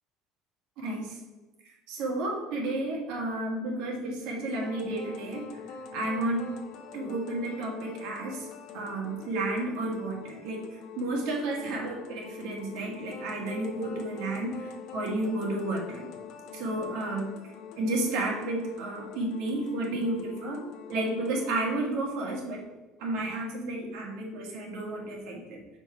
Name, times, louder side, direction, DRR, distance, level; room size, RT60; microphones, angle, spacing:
voice 1, 0.8-1.2 1.9-5.5 5.9-6.5 6.9-8.5 8.7-16.1 16.5-17.3 17.8-20.6 20.9-22.6 23.0-25.6, right 2 dB, 70° right, -1 dB, 1.7 m, -32 dB
sound 1, 4.6-21.6, left 6 dB, 60° left, 0.8 m, -45 dB
4.5 x 4.4 x 5.8 m, 1.1 s
cardioid pair, 155°, 0 cm